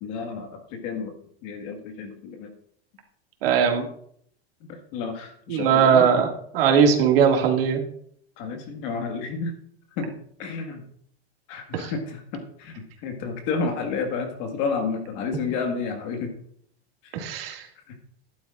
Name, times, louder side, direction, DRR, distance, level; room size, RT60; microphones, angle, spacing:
voice 1, 0.0-1.2 1.4-2.5 4.7-6.1 8.4-9.5 10.0-10.8 11.5-16.3 17.0-17.2 17.9-18.0, left 4 dB, 35° left, 4 dB, 1.7 m, -31 dB
voice 2, 3.4-3.9 5.5-6.3 6.5-7.8 11.7-11.9 17.1-17.7, right 7 dB, 65° right, 2 dB, 2.2 m, -19 dB
13.5 x 11.5 x 2.5 m, 0.64 s
supercardioid pair, 170°, 31 cm